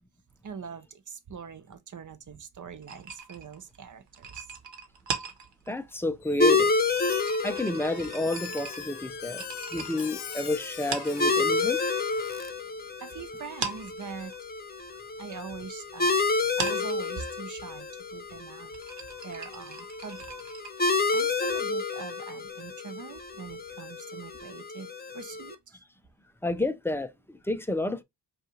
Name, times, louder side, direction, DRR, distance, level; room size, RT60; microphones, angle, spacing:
voice 1, 0.4-4.5 13.0-14.3 15.2-16.2 16.6-18.7 19.2-20.3 21.1-25.8, right 6 dB, 45° right, 0.7 m, -43 dB
sound 1, 2.8-11.8 12.1-13.1 13.4-20.7, right 5 dB, 90° right, 1.1 m, -40 dB
voice 2, 5.7-7.1 7.4-9.4 9.7-11.8 26.4-28.0, left 2 dB, 5° left, 0.4 m, -30 dB
Squeak, 6.2-6.6 6.9-12.5, left 10 dB, 65° left, 0.6 m, -43 dB
sound 2, 6.4-25.5, left 3 dB, 20° left, 0.8 m, -30 dB
5.3 x 2.5 x 3.0 m
wide cardioid pair, 110°, 42 cm